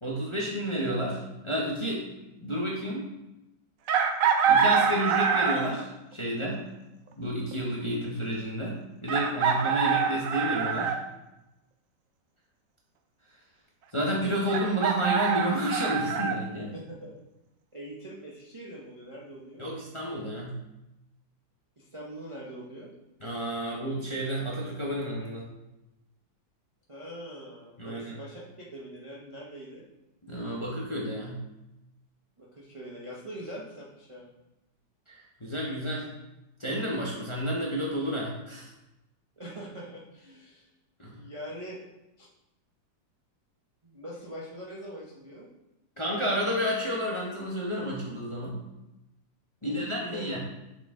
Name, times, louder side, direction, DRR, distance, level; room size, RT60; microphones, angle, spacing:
voice 1, 0.0-2.0 2.4-3.1 4.5-6.6 7.2-10.9 13.9-16.7 19.6-20.6 23.2-25.5 27.8-28.1 30.3-31.4 35.4-36.1 36.6-38.7 41.0-41.2 46.0-48.6 49.6-50.4, equal, 25° left, -4 dB, 0.7 m, -30 dB
Chicken rooster, 3.9-5.8 7.5-7.6 9.1-11.0 14.5-16.4, right 6 dB, 70° right, 0.8 m, -25 dB
voice 2, 16.6-17.1 17.7-19.7 21.8-22.9 26.9-28.4 28.7-29.8 32.4-34.3 39.4-40.7 41.1-41.8 42.2-42.3 43.8-45.5 49.6-50.3, equal, 35° right, -5 dB, 0.5 m, -43 dB
6.5 x 4.3 x 3.7 m, 0.94 s
omnidirectional pair, 2.0 m